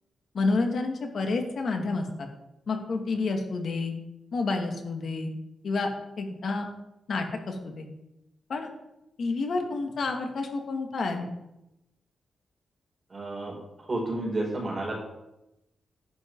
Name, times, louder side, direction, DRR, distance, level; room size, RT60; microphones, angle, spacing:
voice 1, 0.3-2.1 2.7-3.9 4.3-5.3 5.6-5.9 6.2-6.7 7.1-7.9 8.5-8.7 9.2-11.3, left 3 dB, 55° left, 4 dB, 2.1 m, -29 dB
voice 2, 13.1-13.6 13.9-15.0, right 2 dB, 25° right, -1 dB, 4.5 m, -30 dB
11.0 x 10.5 x 4.7 m, 0.91 s
wide cardioid pair, 125°, 0 cm